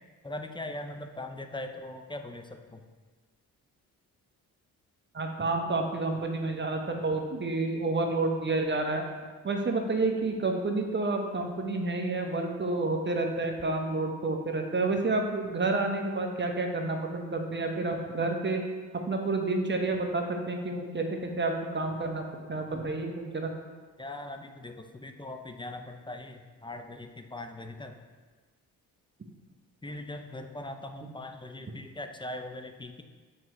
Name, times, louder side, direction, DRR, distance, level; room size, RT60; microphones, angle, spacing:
voice 1, 0.2-2.4 24.0-24.7 25.0-26.4 26.6-27.0 27.3-27.9 29.8-33.0, left 1 dB, 10° left, 5 dB, 0.6 m, -40 dB
voice 2, 5.1-9.0 9.4-18.6 19.1-23.5 31.0-31.1, right 3 dB, 25° right, 3 dB, 1.0 m, -29 dB
7.5 x 4.6 x 3.1 m, 1.4 s
hypercardioid pair, 50°, 43 cm